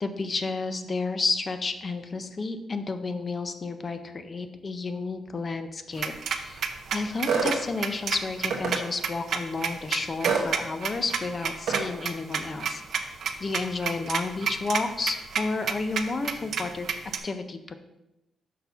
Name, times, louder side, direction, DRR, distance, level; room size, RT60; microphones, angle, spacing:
voice 1, 0.0-6.6 6.9-12.8 13.4-16.9 17.2-17.7, left 3 dB, 25° left, 9 dB, 0.5 m, -31 dB
sound 1, 6.0-17.2, right 7 dB, 50° right, 0.5 m, -30 dB
sound 2, 7.3-7.6 8.5-8.8 10.2-10.5 11.7-11.9, right 5 dB, 80° right, 0.9 m, -25 dB
6.2 x 4.1 x 5.4 m, 0.96 s
wide cardioid pair, 180°, 0 cm